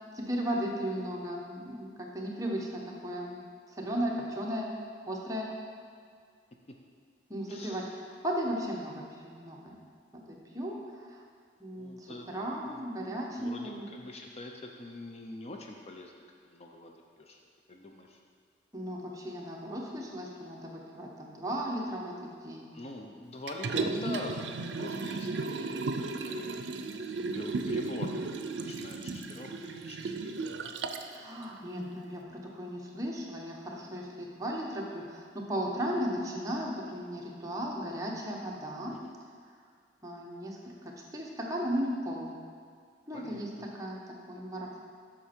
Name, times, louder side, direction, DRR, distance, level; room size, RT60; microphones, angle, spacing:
voice 1, 0.1-3.4 3.7-4.7 5.1-5.5 7.3-7.8 8.2-9.8 10.1-10.8 11.1-11.2 11.6-13.9 18.7-22.7 23.8-24.2 31.1-38.9 40.0-42.3 43.1-43.5 43.8-44.8, equal, 20° right, -2 dB, 1.0 m, -36 dB
voice 2, 7.5-8.0 11.7-12.3 12.6-12.8 13.4-17.4 17.7-18.2 22.7-24.4 24.8-26.6 27.2-30.4 38.9-39.1 43.1-43.4, left 2 dB, 35° left, 2 dB, 0.5 m, -44 dB
Liquid, 23.5-31.1 31.6-31.7, right 3 dB, 85° right, 0.5 m, -35 dB
8.1 x 6.1 x 4.4 m, 2.1 s
head